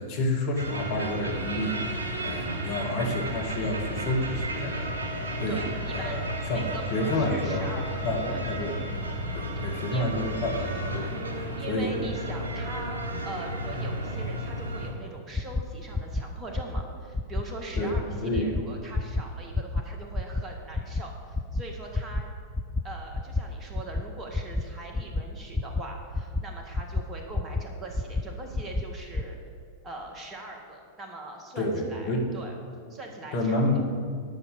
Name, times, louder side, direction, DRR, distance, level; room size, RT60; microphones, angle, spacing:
voice 1, 0.0-4.9 5.4-7.7 8.0-8.8 9.3-11.9 17.8-18.5 31.6-32.3 33.3-33.8, left 1 dB, 50° left, 0 dB, 2.0 m, -29 dB
sound 1, 0.6-14.9, right 1 dB, 70° right, 2.5 m, -33 dB
voice 2, 5.5-6.2 6.5-8.0 8.3-8.4 9.6-10.1 11.6-22.3 22.8-29.4 29.8-32.5 32.9-33.6, right 2 dB, 25° right, 1 dB, 1.8 m, -41 dB
sound 2, 15.3-15.6 15.9-16.2 16.5-16.8 17.1-17.4 17.7-18.0 18.3-18.6 18.9-19.2 19.5-19.8 20.1-20.4 20.7-21.0 21.3-21.6 21.9-22.2 22.5-22.8 23.1-23.4 23.7-24.0 24.3-24.6 24.9-25.2 25.5-25.8 26.1-26.4 26.7-27.0 27.3-27.6 27.9-28.2 28.5-28.8 29.1-29.2, left 2 dB, 10° left, 0.5 m, -28 dB
10.5 x 6.9 x 7.0 m, 2.2 s
figure-of-eight pair, 90°, 0 cm